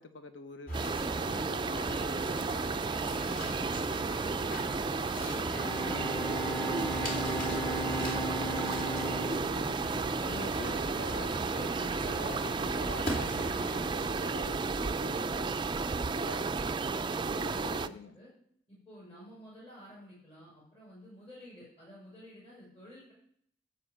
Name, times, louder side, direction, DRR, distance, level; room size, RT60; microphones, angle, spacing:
voice 1, 0.0-2.7 9.1-15.6 16.1-16.4 17.3-18.2, left 3 dB, 65° left, 8 dB, 0.8 m, -46 dB
sound 1, 0.7-13.9, equal, 50° left, 2.8 m, -41 dB
sound 2, 0.7-17.9, right 4 dB, 25° right, 0.4 m, -33 dB
voice 2, 1.8-2.2 3.1-8.3 15.7-16.5 17.2-18.3 18.7-23.1, equal, 30° left, -7 dB, 6.3 m, -53 dB
Bowed string instrument, 5.4-11.0, right 1 dB, 15° left, 0.8 m, -37 dB
14.0 x 5.0 x 7.8 m, 0.67 s
head